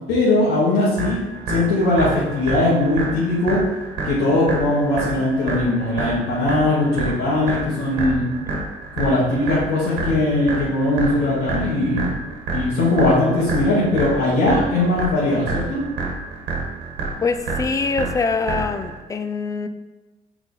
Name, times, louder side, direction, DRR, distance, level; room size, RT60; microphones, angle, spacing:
voice 1, 0.1-1.2 1.5-3.6 4.0-8.3 8.9-12.1 12.5-15.8, left 2 dB, 85° left, -7 dB, 1.8 m, -20 dB
sound 1, 1.0-19.0, right 4 dB, 90° right, 1.5 m, -29 dB
voice 2, 17.2-19.7, left 4 dB, 20° left, 10 dB, 0.4 m, -24 dB
5.7 x 4.0 x 4.1 m, 1.2 s
cardioid pair, 110°, 17 cm